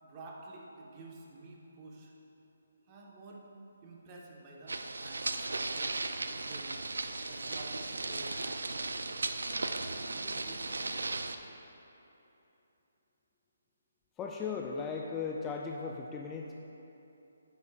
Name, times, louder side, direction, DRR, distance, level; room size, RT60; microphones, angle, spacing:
voice 1, 0.0-2.1 2.8-3.5 3.8-6.0 6.3-6.9 7.3-8.9 9.3-11.1, right 2 dB, 25° right, -2 dB, 1.1 m, -51 dB
sound 1, 4.7-11.3, right 3 dB, 90° right, 0.4 m, -36 dB
voice 2, 14.2-16.5, left 5 dB, 15° left, 0 dB, 0.3 m, -37 dB
9.5 x 8.1 x 2.4 m, 3.0 s
hypercardioid pair, 155°, 0 cm